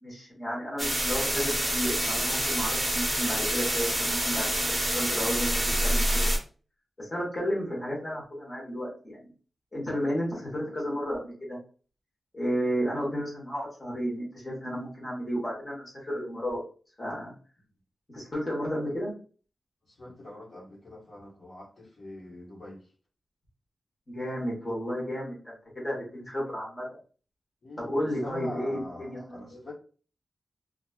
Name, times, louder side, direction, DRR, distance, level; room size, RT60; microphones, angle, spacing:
voice 1, 0.0-6.3 7.0-9.3 9.7-11.6 12.3-16.6 17.0-17.3 18.1-19.1 24.1-26.8 27.8-29.6, equal, 20° left, 1.3 m, -32 dB
sound 1, 0.8-6.4, right 1 dB, 10° right, 0.7 m, -27 dB
voice 2, 19.9-22.9 27.6-29.7, left 1 dB, 55° left, 1.3 m, -44 dB
2.9 x 2.4 x 2.3 m
wide cardioid pair, 145°, 0 cm